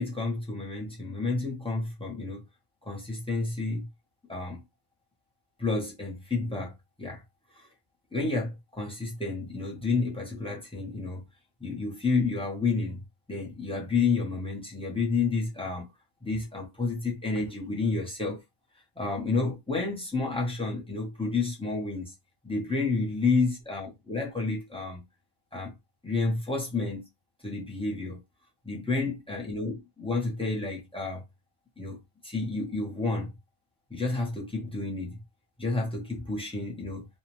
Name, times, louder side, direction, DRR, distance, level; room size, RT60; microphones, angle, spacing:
voice 1, 0.0-2.4 2.8-3.9 4.3-4.6 5.6-7.2 7.6-7.7 8.1-11.2 11.6-13.0 13.3-15.9 16.2-18.4 19.0-22.1 22.4-25.0 25.5-25.7 26.0-27.1 27.4-28.2 28.6-31.2 31.8-33.3 33.9-35.2 35.6-37.1, left 3 dB, 5° left, 0.4 m, -30 dB
2.6 x 2.0 x 3.0 m
omnidirectional pair, 1.3 m